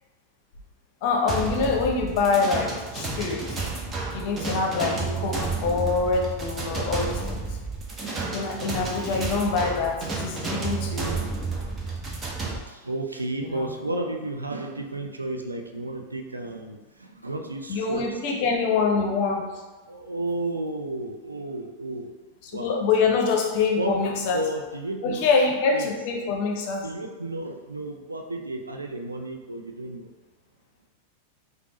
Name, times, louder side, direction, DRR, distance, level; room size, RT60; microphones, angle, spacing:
voice 1, 1.0-3.5 4.1-7.5 8.3-11.2 13.4-13.7 17.7-19.6 22.4-24.5 25.0-26.9, left 4 dB, 45° left, 1 dB, 0.6 m, -25 dB
sound 1, 1.3-12.6, right 3 dB, 20° right, 0.6 m, -31 dB
voice 2, 12.7-18.0 19.9-22.1 22.5-22.8 23.8-23.9 24.3-25.3 25.7-25.9 26.8-30.1, right 2 dB, 80° right, 4 dB, 0.4 m, -32 dB
5.0 x 2.0 x 2.9 m, 1.2 s
figure-of-eight pair, 90°, 0 cm